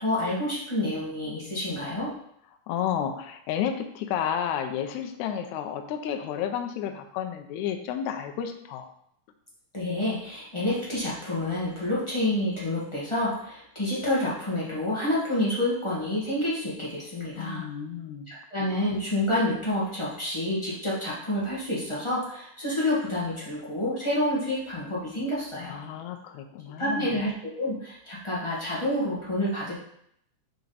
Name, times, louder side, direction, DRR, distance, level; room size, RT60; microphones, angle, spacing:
voice 1, 0.0-2.1 9.7-17.6 18.3-25.8 26.8-29.7, left 1 dB, 35° left, -8 dB, 0.4 m, -28 dB
voice 2, 2.7-8.9 17.4-18.3 25.7-27.1, left 9 dB, 80° left, 5 dB, 1.9 m, -31 dB
5.8 x 4.2 x 3.9 m, 0.71 s
omnidirectional pair, 3.6 m